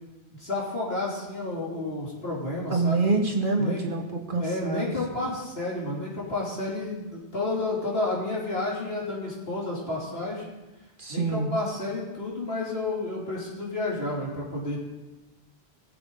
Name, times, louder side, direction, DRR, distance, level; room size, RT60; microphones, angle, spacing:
voice 1, 0.4-3.1 3.6-3.8 4.4-10.4 11.1-14.8, left 2 dB, 70° left, -4 dB, 3.3 m, -31 dB
voice 2, 2.7-4.9 11.0-11.5, right 3 dB, 55° right, 1 dB, 1.6 m, -26 dB
21.0 x 7.7 x 3.8 m, 1.1 s
omnidirectional pair, 1.1 m